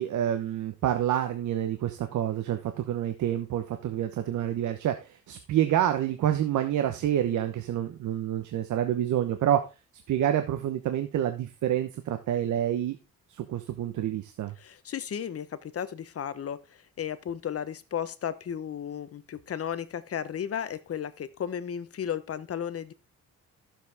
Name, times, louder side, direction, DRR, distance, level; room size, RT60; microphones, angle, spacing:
voice 1, 0.0-9.6 10.1-13.0 13.3-14.5, right 11 dB, 75° right, 8 dB, 1.1 m, -28 dB
voice 2, 14.6-22.9, left 9 dB, 50° left, 14 dB, 1.1 m, -34 dB
13.5 x 7.5 x 3.6 m, 0.30 s
cardioid pair, 90°, 30 cm